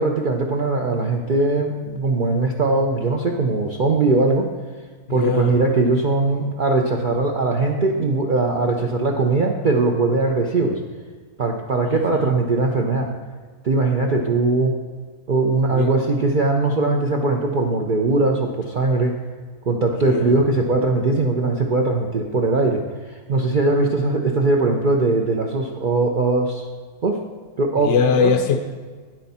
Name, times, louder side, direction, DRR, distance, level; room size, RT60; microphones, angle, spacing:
voice 1, 0.0-4.5 5.1-10.8 11.4-13.1 13.6-14.7 15.3-19.1 19.7-26.6 27.0-27.2 27.6-28.3, right 3 dB, 50° right, 1 dB, 0.6 m, -20 dB
voice 2, 5.1-5.6 11.8-12.3 15.7-16.0 20.0-20.4 27.8-28.6, left 6 dB, 65° left, 6 dB, 0.8 m, -21 dB
9.7 x 7.7 x 4.2 m, 1.5 s
omnidirectional pair, 1.5 m